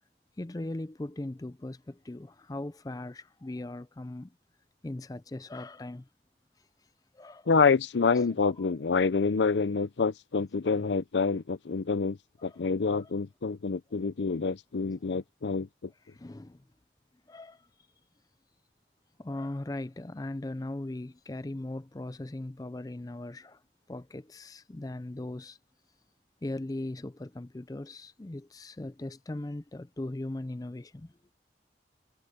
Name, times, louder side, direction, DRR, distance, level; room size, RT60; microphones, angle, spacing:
voice 1, 0.4-4.3 4.8-6.1 7.1-7.6 8.1-8.3 8.6-8.7 10.7-11.0 12.4-12.6 13.0-13.1 16.0-16.6 17.3-17.7 19.2-23.6 23.9-25.6 26.4-31.1, left 1 dB, 20° left, 0.4 m, -39 dB
voice 2, 7.5-15.9, left 4 dB, 85° left, 0.6 m, -27 dB
head